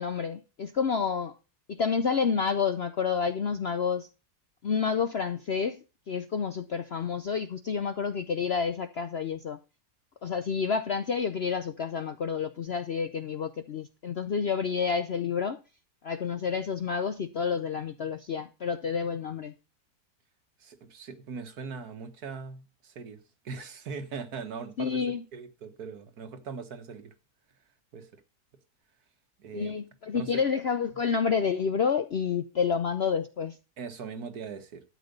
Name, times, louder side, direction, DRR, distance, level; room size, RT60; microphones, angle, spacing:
voice 1, 0.0-1.3 1.7-4.1 4.6-9.6 10.2-15.6 16.0-19.5 24.8-25.2 29.5-33.6, left 6 dB, 55° left, 0.7 m, -29 dB
voice 2, 20.6-23.2 23.4-25.0 25.3-27.1 27.9-28.2 29.4-29.7 30.1-30.4 33.8-34.8, right 5 dB, 65° right, 1.8 m, -40 dB
12.5 x 7.7 x 5.2 m
omnidirectional pair, 1.8 m